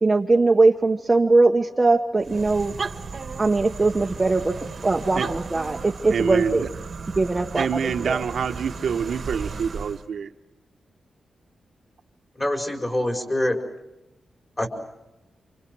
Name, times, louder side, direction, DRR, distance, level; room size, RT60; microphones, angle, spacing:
voice 1, 0.0-2.7 3.4-4.5 4.8-6.7 7.2-8.2, right 3 dB, 20° right, 2 dB, 1.1 m, -20 dB
sound 1, 2.2-10.1, right 4 dB, 45° right, 1.5 m, -35 dB
voice 2, 6.1-6.7 7.6-10.3, right 7 dB, 70° right, 5 dB, 1.3 m, -26 dB
voice 3, 12.4-13.6 14.6-14.7, left 1 dB, 20° left, 3 dB, 5.0 m, -24 dB
29.5 x 27.0 x 6.3 m, 0.95 s
wide cardioid pair, 150°, 0 cm